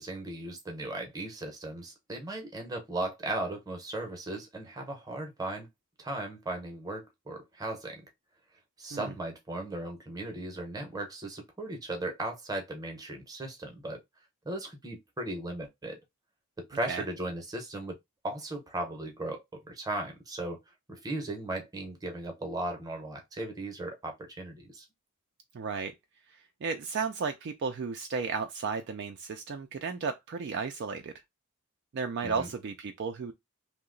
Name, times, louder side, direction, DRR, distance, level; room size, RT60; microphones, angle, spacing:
voice 1, 0.0-5.7 6.0-8.0 8.8-14.0 14.4-16.0 16.7-18.0 18.2-20.6 20.9-24.8 32.2-32.5, right 2 dB, 15° right, 0.7 m, -37 dB
voice 2, 25.5-25.9 26.6-31.1 31.9-33.3, right 5 dB, 50° right, 0.3 m, -34 dB
2.8 x 2.1 x 3.7 m
head